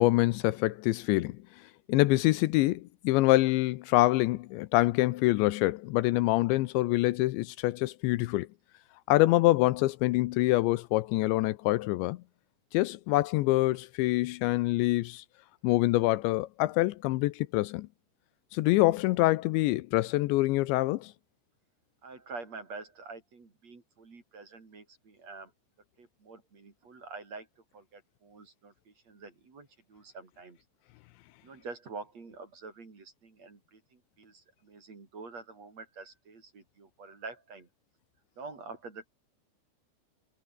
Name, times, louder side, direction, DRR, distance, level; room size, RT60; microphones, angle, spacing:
voice 1, 0.0-1.4 1.9-8.5 9.1-12.2 12.7-15.2 15.6-17.9 18.5-21.1, left 19 dB, 85° left, 3.0 m, -25 dB
voice 2, 22.0-25.5 26.0-27.5 27.7-30.6 31.4-37.7 38.4-39.0, right 4 dB, 35° right, 5.2 m, -46 dB
omnidirectional pair, 5.3 m